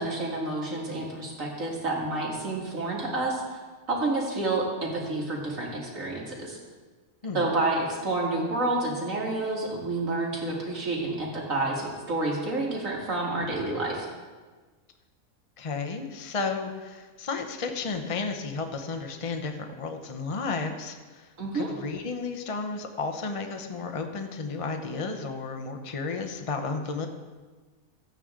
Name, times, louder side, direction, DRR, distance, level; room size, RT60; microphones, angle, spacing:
voice 1, 0.0-3.6 3.9-6.6 7.3-14.1 21.4-21.7, right 2 dB, 65° right, -2 dB, 2.5 m, -29 dB
voice 2, 15.6-21.3 21.5-27.1, left 4 dB, 30° left, 5 dB, 0.6 m, -33 dB
14.5 x 9.0 x 3.7 m, 1.4 s
omnidirectional pair, 1.5 m